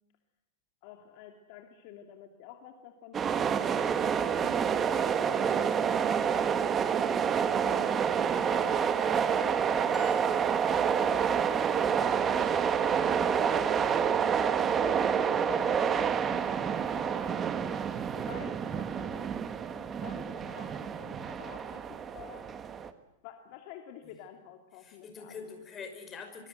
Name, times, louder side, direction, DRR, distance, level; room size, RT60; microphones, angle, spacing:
voice 1, 0.8-4.7 5.0-5.7 7.5-17.8 18.2-21.8 22.1-22.5 23.2-25.5, left 9 dB, 50° left, 5 dB, 2.5 m, -49 dB
sound 1, 3.1-22.9, right 7 dB, 20° right, 1.5 m, -28 dB
voice 2, 4.0-4.6 14.6-14.8 24.8-26.5, left 5 dB, 20° left, 5 dB, 5.7 m, -46 dB
sound 2, 9.9-11.1, right 2 dB, ahead, 6.6 m, -47 dB
25.0 x 24.5 x 8.0 m, 0.86 s
supercardioid pair, 155°, 0 cm